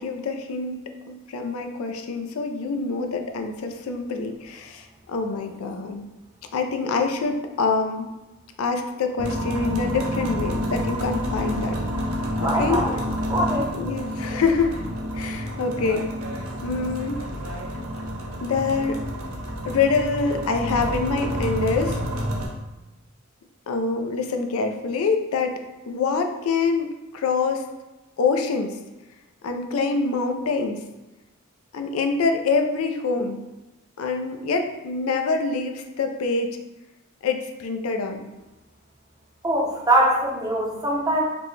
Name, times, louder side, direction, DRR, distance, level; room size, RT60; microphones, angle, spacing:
voice 1, 0.0-6.0 6.5-8.1 8.6-11.8 12.4-12.8 13.7-14.7 15.1-16.1 16.6-17.3 18.4-19.0 19.7-22.0 23.7-26.9 27.1-27.7 28.2-28.8 29.4-30.8 31.7-33.4 34.0-36.6 37.2-38.3, left 4 dB, 90° left, 5 dB, 0.4 m, -25 dB
sound 1, 9.2-22.5, equal, 85° right, 0.7 m, -29 dB
voice 2, 12.4-12.9 13.3-13.7 39.4-41.2, right 1 dB, 15° right, -2 dB, 0.6 m, -22 dB
4.2 x 2.1 x 3.1 m, 1.0 s
head